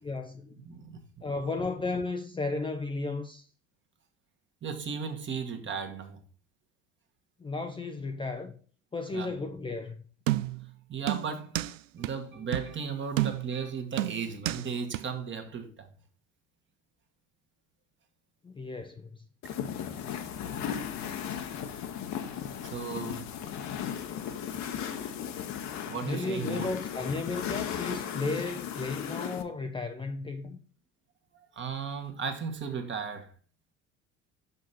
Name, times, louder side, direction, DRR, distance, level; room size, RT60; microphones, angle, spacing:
voice 1, 0.0-0.5 1.2-3.5 7.4-8.6 8.9-10.0 18.4-19.1 26.0-30.6, left 3 dB, 15° left, 0.6 m, -34 dB
voice 2, 0.6-1.2 4.6-6.2 9.1-9.4 10.9-11.6 11.9-15.9 22.6-23.5 25.9-26.7 31.3-33.3, right 6 dB, 30° right, 1.5 m, -36 dB
sound 1, 10.3-10.7 11.1-11.7 12.0-12.1 12.5-12.7 13.2-13.6 14.0-14.6 14.9-15.0, right 15 dB, 80° right, 0.5 m, -30 dB
sound 2, 19.4-29.4, left 8 dB, 45° left, 1.0 m, -36 dB
6.3 x 5.4 x 4.1 m
hypercardioid pair, 70°, 37 cm